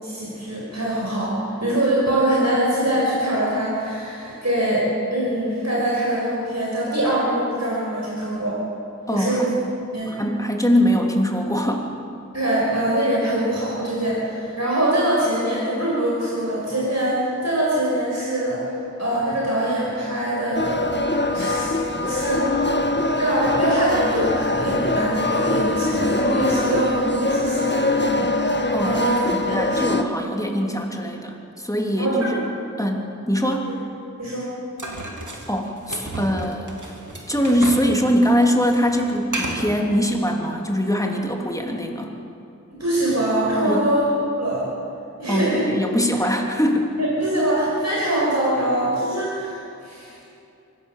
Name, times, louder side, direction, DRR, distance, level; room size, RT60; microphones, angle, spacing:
voice 1, 0.0-4.8 5.1-8.6 9.1-9.5 9.9-10.1 12.3-21.0 21.3-22.6 23.1-28.3 28.8-29.1 29.5-29.8 32.0-32.3 34.2-34.5 42.8-44.1 44.4-44.7 45.2-45.6 47.0-50.2, right 1 dB, 60° right, -6 dB, 5.8 m, -23 dB
voice 2, 9.1-9.5 10.1-11.9 28.7-29.0 29.3-32.4 32.8-33.7 35.5-36.8 37.3-42.1 43.6-43.9 45.3-46.9, equal, 10° left, 1 dB, 3.1 m, -22 dB
sound 1, 20.5-30.0, left 2 dB, 35° left, 1.5 m, -23 dB
sound 2, 34.8-37.9 38.2-39.8, right 1 dB, 85° right, 2.8 m, -32 dB
24.5 x 16.0 x 7.5 m, 2.7 s
wide cardioid pair, 40°, 30 cm